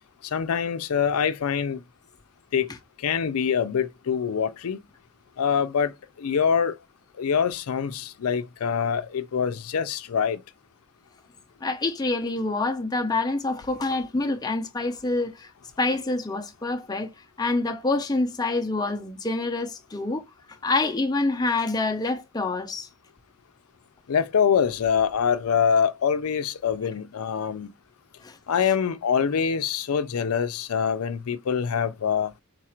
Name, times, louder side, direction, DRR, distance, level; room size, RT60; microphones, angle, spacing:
voice 1, 0.2-1.8 2.5-2.7 3.0-4.8 5.4-5.9 6.2-6.8 7.2-10.4 24.1-27.7 28.5-32.3, left 7 dB, 80° left, 0.4 m, -24 dB
voice 2, 11.6-15.5 15.8-17.1 17.4-20.2 20.6-22.9 28.2-28.4, left 2 dB, 20° left, 0.5 m, -26 dB
3.9 x 2.4 x 4.3 m
head